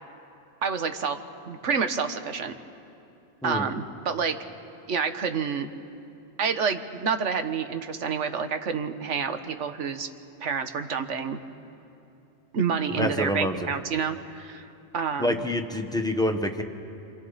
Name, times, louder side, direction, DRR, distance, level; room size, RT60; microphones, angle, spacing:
voice 1, 0.6-1.2 1.5-2.5 3.4-4.4 4.9-5.7 6.4-10.1 10.4-11.4 12.5-14.6 14.9-15.4, right 6 dB, 85° right, 8 dB, 1.4 m, -28 dB
voice 2, 13.0-13.5 15.2-16.6, left 1 dB, 5° left, 4 dB, 1.1 m, -26 dB
28.0 x 26.5 x 4.1 m, 2.7 s
omnidirectional pair, 1.2 m